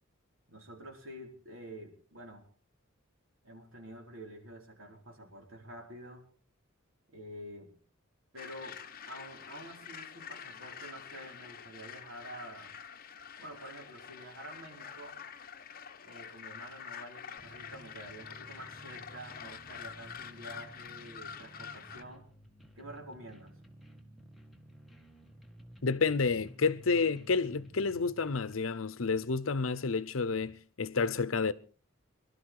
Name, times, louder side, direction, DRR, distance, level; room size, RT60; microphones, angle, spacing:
voice 1, 0.5-2.5 3.4-6.2 7.1-7.7 8.3-8.8 9.1-12.7 13.4-15.2 16.0-22.2 22.7-23.5, right 1 dB, 70° right, 4.7 m, -48 dB
sound 1, 8.4-22.0, left 7 dB, 45° left, 0.9 m, -47 dB
sound 2, 17.4-28.5, right 1 dB, ahead, 1.7 m, -54 dB
voice 2, 25.8-31.5, left 4 dB, 70° left, 0.8 m, -30 dB
22.5 x 12.5 x 4.8 m
head